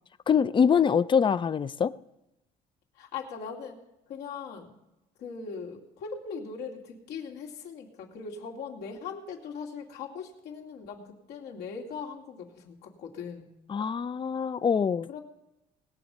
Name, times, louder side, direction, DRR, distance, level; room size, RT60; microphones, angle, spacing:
voice 1, 0.3-1.9 13.7-15.1, left 7 dB, 30° left, 0.5 m, -24 dB
voice 2, 3.0-3.8 4.1-4.7 5.2-13.5 15.1-15.2, left 5 dB, 80° left, 2.7 m, -40 dB
19.5 x 7.1 x 5.4 m
cardioid pair, 110°, 17 cm